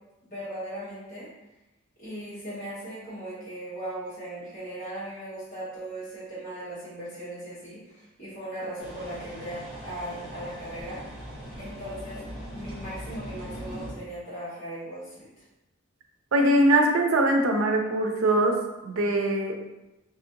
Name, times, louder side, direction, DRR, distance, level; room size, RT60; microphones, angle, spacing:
voice 1, 0.3-1.3 2.0-11.0 11.5-12.2 12.5-15.3, right 1 dB, 40° left, -12 dB, 1.3 m, -38 dB
sound 1, 8.8-13.9, equal, ahead, 1.0 m, -40 dB
voice 2, 16.3-18.6 18.8-19.6, right 1 dB, 80° right, 3 dB, 0.5 m, -22 dB
3.1 x 2.7 x 2.5 m, 1.0 s
head